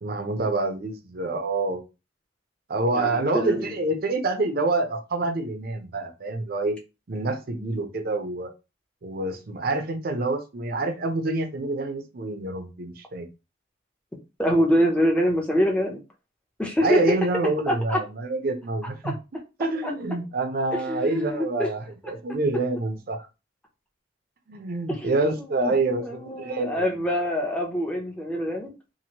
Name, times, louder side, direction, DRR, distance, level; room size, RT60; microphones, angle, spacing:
voice 1, 0.0-1.8 2.7-6.8 7.1-8.5 9.0-13.3 16.8-19.1 19.6-21.8 22.1-23.3 24.5-26.9, right 2 dB, 50° right, 0.5 m, -27 dB
voice 2, 2.9-3.7 14.4-16.0 16.6-17.0 17.7-18.0 19.0-19.1 19.8-19.9 20.9-21.7 24.9-25.7 26.0-28.7, equal, 5° left, 0.6 m, -25 dB
2.9 x 2.5 x 2.9 m
head